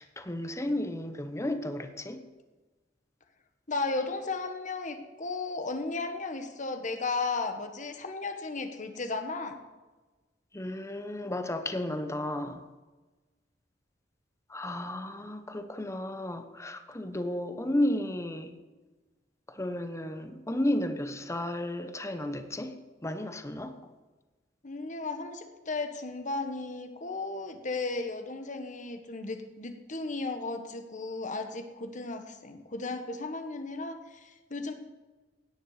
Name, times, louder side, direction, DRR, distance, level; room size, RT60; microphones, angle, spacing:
voice 1, 0.0-2.3 10.5-12.6 14.5-18.5 19.5-23.9, left 1 dB, 15° left, 8 dB, 1.0 m, -33 dB
voice 2, 3.7-9.6 24.6-34.7, left 3 dB, 45° left, 7 dB, 1.5 m, -35 dB
17.5 x 9.9 x 5.0 m, 1.2 s
head